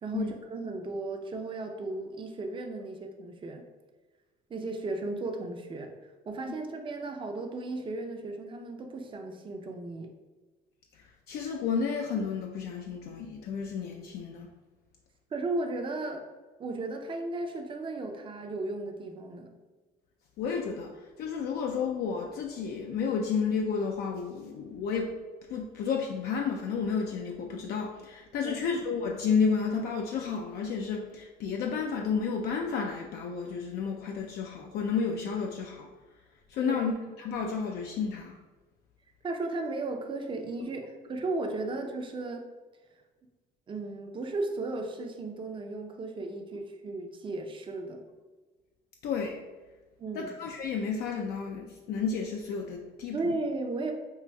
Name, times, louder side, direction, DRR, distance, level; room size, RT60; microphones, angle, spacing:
voice 1, 0.0-3.6 4.5-5.9 6.3-10.1 15.3-16.2 16.6-19.5 28.4-28.6 36.6-36.9 39.2-42.5 43.7-48.0 50.0-50.3 53.1-53.9, right 2 dB, 30° right, 4 dB, 0.5 m, -35 dB
voice 2, 11.3-14.5 20.4-25.1 25.5-35.9 36.5-36.9 37.2-38.4 49.0-49.4 50.1-53.3, left 5 dB, 70° left, 1 dB, 0.4 m, -31 dB
5.5 x 2.4 x 2.2 m, 1.3 s
cardioid pair, 110°, 17 cm